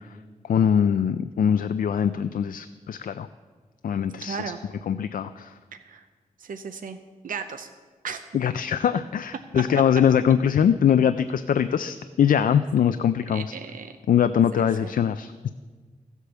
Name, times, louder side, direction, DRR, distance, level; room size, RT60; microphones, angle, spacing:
voice 1, 0.5-3.3 3.8-4.4 4.9-5.5 8.3-13.5 14.1-15.3, left 8 dB, 80° left, 11 dB, 0.4 m, -22 dB
voice 2, 4.2-4.6 5.8-6.0 6.4-7.0 7.2-7.7 8.0-8.2 13.3-13.9 14.8-14.9, right 6 dB, 75° right, 8 dB, 0.7 m, -35 dB
15.0 x 8.2 x 6.9 m, 1.4 s
wide cardioid pair, 110°, 14 cm